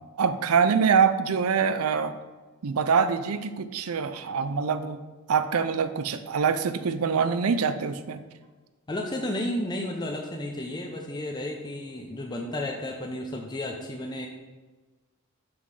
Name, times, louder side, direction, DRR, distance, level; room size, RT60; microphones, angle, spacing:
voice 1, 0.2-2.2 2.6-5.0 5.3-8.2, right 6 dB, 75° right, 11 dB, 0.5 m, -24 dB
voice 2, 8.9-14.3, left 1 dB, 20° left, 0 dB, 0.5 m, -32 dB
6.1 x 5.7 x 4.7 m, 1.3 s
head